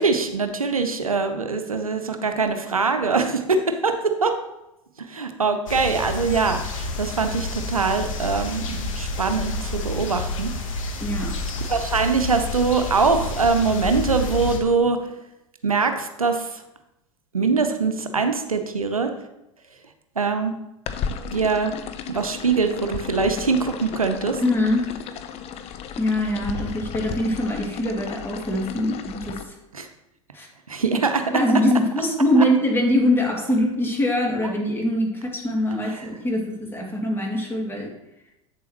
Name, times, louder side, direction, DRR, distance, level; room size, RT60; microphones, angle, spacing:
voice 1, 0.0-4.4 5.0-10.5 11.7-15.0 15.6-16.6 17.3-19.1 20.2-20.5 21.3-21.7 22.1-24.4 29.7-29.9 30.7-31.2 34.4-34.5 35.9-36.1, right 4 dB, 90° right, 7 dB, 0.7 m, -23 dB
sound 1, 5.7-14.6, left 2 dB, 70° left, 1.2 m, -30 dB
voice 2, 11.0-11.3 24.4-24.8 26.0-29.5 30.3-30.5 30.8-31.0 31.3-37.9, left 1 dB, 15° left, 0 dB, 2.3 m, -23 dB
sound 2, 20.9-29.4, left 7 dB, 35° left, 0.7 m, -34 dB
8.4 x 6.9 x 3.0 m, 0.90 s
figure-of-eight pair, 80°, 17 cm